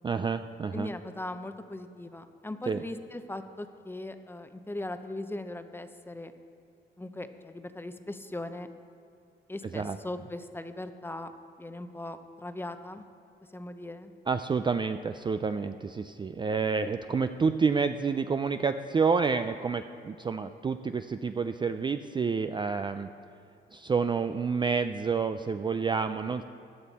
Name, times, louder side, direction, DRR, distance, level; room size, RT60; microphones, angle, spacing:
voice 1, 0.0-0.9 2.7-2.8 9.7-10.0 14.3-23.1 23.7-26.4, right 5 dB, 25° right, 9 dB, 0.4 m, -29 dB
voice 2, 0.7-6.3 7.0-8.7 9.5-11.3 11.6-13.0 13.5-14.1, left 1 dB, 10° left, 9 dB, 0.7 m, -39 dB
15.5 x 10.5 x 4.2 m, 2.6 s
cardioid pair, 90°, 20 cm